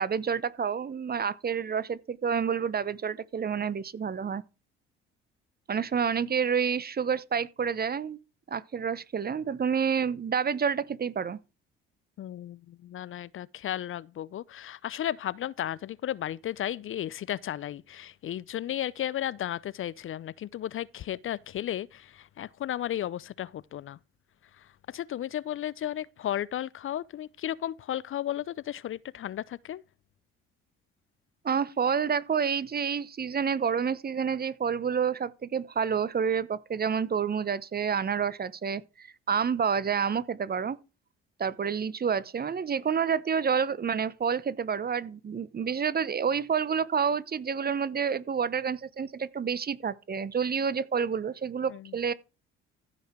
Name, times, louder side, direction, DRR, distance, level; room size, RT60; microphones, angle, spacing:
voice 1, 0.0-4.4 5.7-8.2 8.5-11.4 31.4-40.8 41.4-52.1, right 6 dB, 30° right, 0.9 m, -29 dB
voice 2, 12.2-24.0 24.6-29.8 51.7-52.0, left 11 dB, 45° left, 0.6 m, -34 dB
15.0 x 5.8 x 4.5 m
hypercardioid pair, 55°, 30 cm